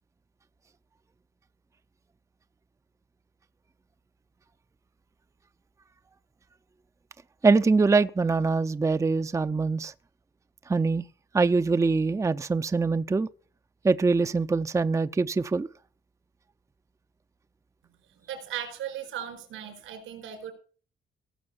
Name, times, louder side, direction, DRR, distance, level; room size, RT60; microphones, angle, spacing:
voice 1, 7.4-9.9 10.7-11.0 11.3-13.3 13.8-15.7, right 4 dB, 15° right, 0.5 m, -23 dB
voice 2, 18.3-20.5, right 9 dB, 85° right, 4.7 m, -37 dB
17.5 x 6.5 x 7.0 m
cardioid pair, 90°, 20 cm